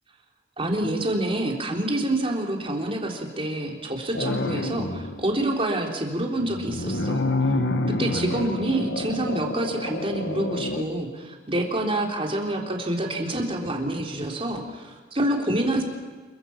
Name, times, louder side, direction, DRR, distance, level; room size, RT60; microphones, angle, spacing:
voice 1, 0.6-7.2 8.0-15.8, right 1 dB, 30° right, 0 dB, 3.5 m, -27 dB
I Need to Eat Something..., 4.1-5.2 6.4-10.8, left 2 dB, 65° left, 1.5 m, -28 dB
28.0 x 23.0 x 5.9 m, 1.5 s
head